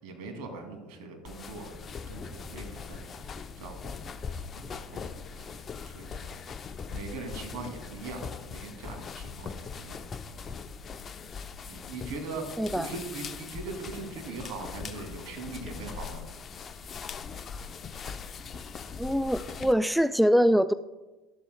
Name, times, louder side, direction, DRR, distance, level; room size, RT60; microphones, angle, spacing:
voice 1, 0.0-4.1 4.5-6.4 6.9-10.1 10.3-10.7 11.6-16.3, right 3 dB, 60° right, 3 dB, 2.5 m, -41 dB
sound 1, 1.3-19.7, left 5 dB, 35° left, 0.6 m, -41 dB
voice 2, 12.6-12.9 19.0-20.7, equal, ahead, 14 dB, 0.3 m, -23 dB
12.5 x 12.5 x 2.2 m, 1.1 s
hypercardioid pair, 75°, 0 cm